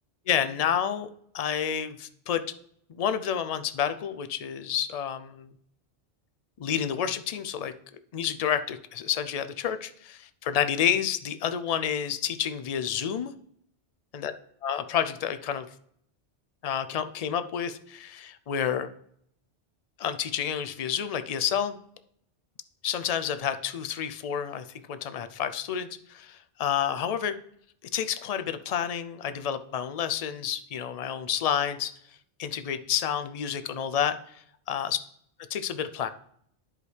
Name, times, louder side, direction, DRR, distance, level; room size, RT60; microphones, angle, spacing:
voice 1, 0.3-1.1 1.3-2.4 2.9-5.5 6.6-7.7 8.1-13.3 14.1-14.3 14.6-15.7 16.6-18.9 20.0-21.8 22.8-27.4 27.9-35.0 35.5-36.1, left 9 dB, 50° left, 11 dB, 0.4 m, -29 dB
11.0 x 4.9 x 3.2 m, 0.68 s
omnidirectional pair, 1.1 m